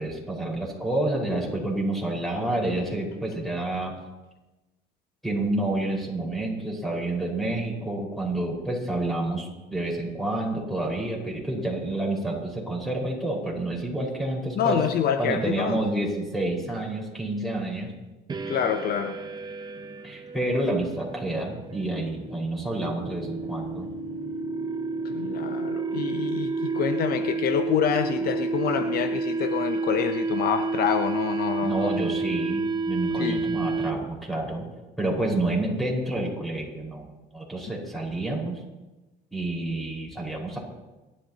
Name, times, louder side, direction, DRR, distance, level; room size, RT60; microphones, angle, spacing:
voice 1, 0.0-3.9 5.2-14.8 15.2-17.9 20.0-23.9 31.6-34.6 35.0-38.6 39.3-40.6, right 2 dB, ahead, -2 dB, 5.1 m, -29 dB
voice 2, 14.6-15.8 18.5-19.2 25.0-31.9 33.2-33.4, left 8 dB, 65° left, 8 dB, 0.8 m, -27 dB
sound 1, 18.3-34.2, right 3 dB, 25° right, 0.7 m, -30 dB
29.5 x 12.5 x 2.9 m, 1.1 s
cardioid pair, 110°, 17 cm